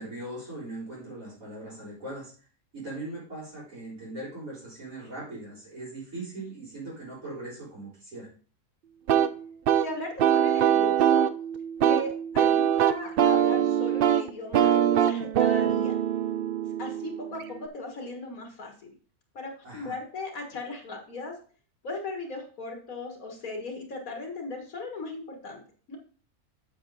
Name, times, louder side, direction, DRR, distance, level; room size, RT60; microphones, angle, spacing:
voice 1, 0.0-2.3 2.7-8.3 19.6-19.9, right 2 dB, 65° right, -10 dB, 5.0 m, -40 dB
sound 1, 9.1-17.7, right 9 dB, 85° right, 0.5 m, -23 dB
voice 2, 9.8-11.3 11.8-16.0 16.8-18.9 19.3-21.3 21.8-25.6 25.9-26.0, left 2 dB, 70° left, 2 dB, 2.0 m, -37 dB
8.2 x 6.6 x 4.0 m, 0.41 s
omnidirectional pair, 1.5 m